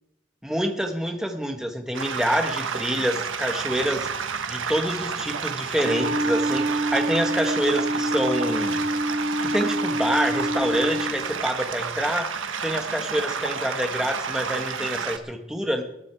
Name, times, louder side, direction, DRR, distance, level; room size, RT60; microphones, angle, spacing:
voice 1, 0.4-4.1 4.5-8.8 9.4-12.3 12.6-15.8, equal, 5° right, 3 dB, 1.7 m, -27 dB
sound 1, 1.9-15.2, right 6 dB, 75° right, 1.2 m, -31 dB
Wind instrument woodwind instrument, 5.8-11.2, right 1 dB, 50° right, 2.2 m, -26 dB
20.0 x 11.0 x 4.8 m, 0.88 s
head